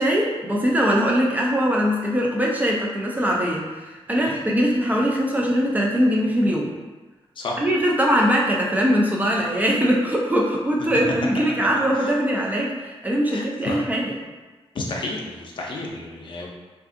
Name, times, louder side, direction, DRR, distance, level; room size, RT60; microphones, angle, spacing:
voice 1, 0.0-6.7 7.6-14.1, equal, 15° right, -2 dB, 0.3 m, -21 dB
voice 2, 13.3-13.8 14.7-16.5, left 2 dB, 50° left, -1 dB, 0.5 m, -31 dB
3.4 x 2.4 x 2.5 m, 1.2 s
wide cardioid pair, 160°, 10 cm